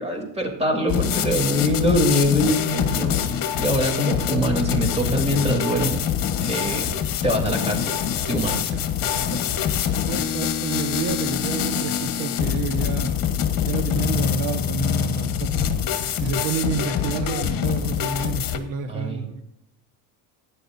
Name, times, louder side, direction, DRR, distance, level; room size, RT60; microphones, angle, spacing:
voice 1, 0.0-6.0 6.4-7.9 8.3-8.7 16.4-16.5 18.9-19.3, equal, 15° right, 2 dB, 3.0 m, -24 dB
sound 1, 0.9-18.6, left 9 dB, 45° left, 1.3 m, -25 dB
voice 2, 9.3-9.7 10.0-13.2 13.6-15.7 16.2-19.4, right 6 dB, 70° right, 7 dB, 1.4 m, -30 dB
13.5 x 10.0 x 2.6 m, 0.83 s
cardioid pair, 125°, 46 cm